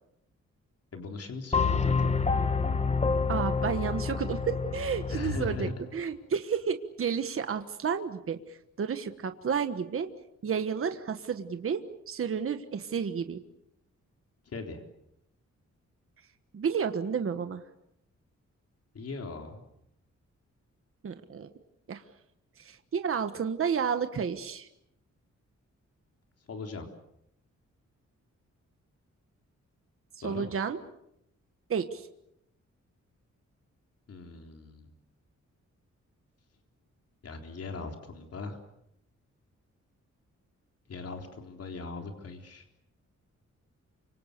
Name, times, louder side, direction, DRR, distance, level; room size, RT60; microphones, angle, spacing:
voice 1, 0.9-2.1 5.1-5.8 14.5-14.8 18.9-19.6 26.5-26.9 30.2-30.5 34.1-34.9 37.2-38.6 40.9-42.6, left 3 dB, 55° left, 4 dB, 3.9 m, -39 dB
sound 1, 1.5-5.7, left 4 dB, 20° left, 1.1 m, -28 dB
voice 2, 3.3-10.1 10.4-13.4 16.5-17.6 21.0-21.5 21.9-22.0 22.6-24.7 30.2-30.8 31.7-32.1, right 6 dB, 50° right, 8 dB, 1.4 m, -31 dB
29.5 x 26.0 x 6.8 m, 0.79 s
wide cardioid pair, 155°, 29 cm